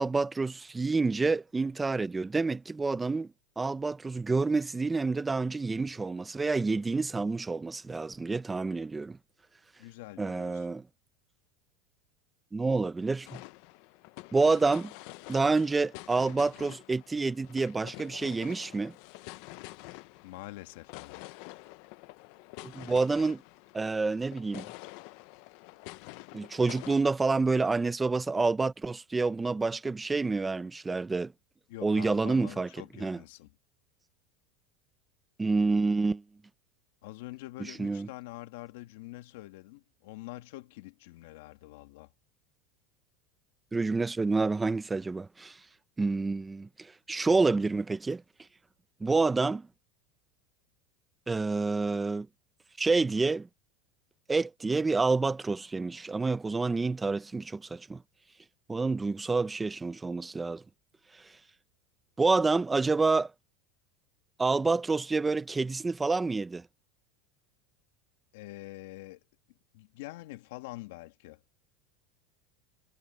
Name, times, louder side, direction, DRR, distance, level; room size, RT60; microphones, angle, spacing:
voice 1, 0.0-3.3 3.6-9.2 10.2-10.8 12.5-13.4 14.3-14.9 15.3-18.9 22.6-23.4 23.7-24.7 26.3-31.3 31.8-32.7 33.0-33.2 35.4-36.2 37.6-38.1 43.7-45.6 46.0-46.7 47.1-48.2 49.0-49.7 51.3-52.3 52.8-53.5 54.3-58.0 58.7-60.6 62.2-63.3 64.4-66.6, right 3 dB, 10° right, 0.6 m, -28 dB
voice 2, 9.8-10.7 20.2-21.4 31.7-33.5 37.0-42.1 68.3-69.2 69.7-71.4, left 18 dB, 70° left, 2.1 m, -45 dB
sound 1, 13.2-27.0, left 21 dB, 55° left, 0.7 m, -47 dB
supercardioid pair, 160°, 0 cm